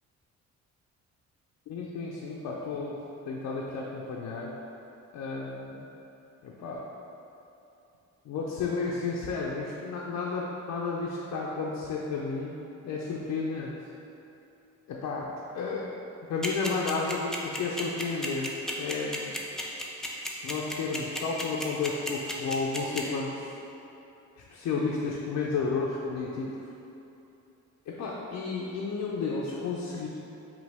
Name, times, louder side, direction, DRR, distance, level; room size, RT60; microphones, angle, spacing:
voice 1, 1.7-3.0 3.3-4.5 5.1-5.9 6.4-6.8 8.2-12.6 12.8-13.7 14.9-15.3 15.5-15.9 16.3-19.3 20.4-23.5 24.5-26.5 27.9-30.1, left 4 dB, 70° left, -3 dB, 0.6 m, -32 dB
sound 1, 16.4-23.0, left 1 dB, ahead, 0.5 m, -33 dB
5.1 x 2.8 x 3.4 m, 2.9 s
cardioid pair, 90°, 30 cm